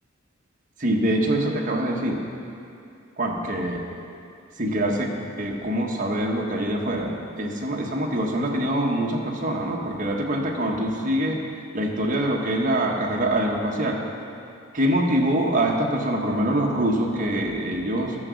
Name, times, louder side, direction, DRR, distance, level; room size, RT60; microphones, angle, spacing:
voice 1, 0.8-2.2 3.2-3.8 4.6-11.4 11.7-14.0 14.7-18.1, right 1 dB, 40° right, 0 dB, 1.3 m, -24 dB
12.0 x 7.0 x 6.3 m, 2.5 s
head